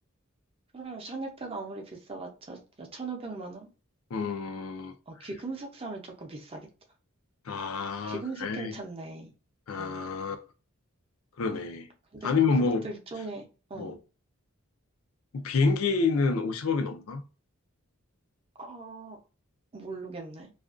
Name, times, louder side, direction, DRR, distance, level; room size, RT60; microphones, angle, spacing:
voice 1, 0.7-3.7 5.1-6.7 8.0-9.3 9.8-10.0 12.1-13.4 13.7-14.0 18.6-19.2 19.7-20.5, right 3 dB, 25° right, 0.5 m, -39 dB
voice 2, 4.1-4.9 7.5-8.8 9.7-10.4 11.4-11.9 12.2-12.9 13.8-13.9 15.3-17.2, left 4 dB, 75° left, 0.4 m, -28 dB
2.4 x 2.2 x 2.4 m
head